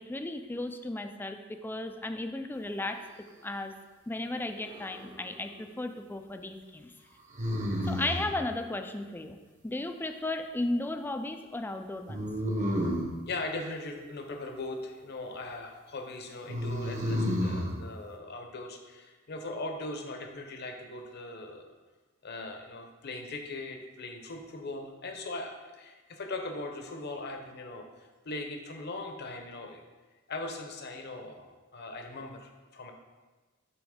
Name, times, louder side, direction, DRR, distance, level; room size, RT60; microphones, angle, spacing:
voice 1, 0.0-3.0 3.4-3.7 4.1-6.9 7.8-9.4 9.6-12.3, left 2 dB, 10° left, 7 dB, 0.3 m, -35 dB
sound 1, 4.6-5.3 7.3-8.3 12.1-13.1 16.5-17.7, equal, 35° right, 0.9 m, -31 dB
voice 2, 13.3-21.7 22.2-27.9 28.2-29.8 30.3-31.5 31.7-32.9, left 2 dB, 50° left, 4 dB, 0.8 m, -39 dB
7.0 x 3.0 x 4.9 m, 1.3 s
head